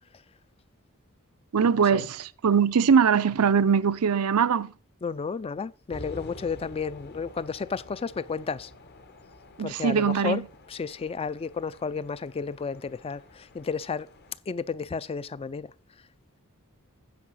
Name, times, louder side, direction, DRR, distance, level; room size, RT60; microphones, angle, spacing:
voice 1, 1.5-4.7 9.6-10.4, right 6 dB, 90° right, 0.5 m, -22 dB
voice 2, 5.0-8.7 9.6-10.4 10.7-14.1 14.5-15.7, left 5 dB, 25° left, 0.3 m, -32 dB
sound 1, 5.9-14.4, left 2 dB, 50° left, 1.1 m, -48 dB
9.4 x 5.0 x 6.3 m
head